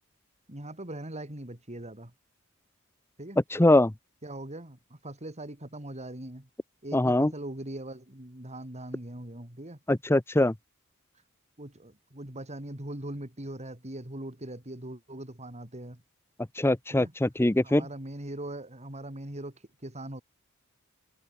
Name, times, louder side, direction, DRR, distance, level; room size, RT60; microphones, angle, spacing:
voice 1, 0.5-2.1 3.2-3.4 4.2-6.5 6.8-9.8 11.6-16.0 16.9-17.1 17.6-20.2, right 1 dB, 30° right, 3.7 m, -41 dB
voice 2, 3.5-3.9 6.9-7.3 9.9-10.5 16.6-17.8, left 1 dB, 10° left, 0.7 m, -22 dB
head